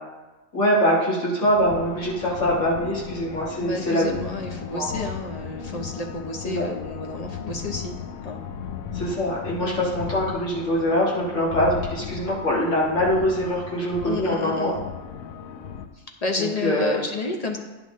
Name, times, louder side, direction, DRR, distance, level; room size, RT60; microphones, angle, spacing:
voice 1, 0.5-4.2 4.7-5.1 6.4-6.7 8.9-14.7 16.4-17.0, equal, 65° left, -6 dB, 2.0 m, -23 dB
sound 1, 1.4-15.9, left 7 dB, 90° left, 1.1 m, -36 dB
voice 2, 3.7-8.0 8.2-8.4 9.6-9.9 14.0-14.9 16.2-17.6, left 3 dB, 35° left, 2 dB, 0.7 m, -30 dB
10.5 x 6.2 x 3.1 m, 1.1 s
omnidirectional pair, 1.4 m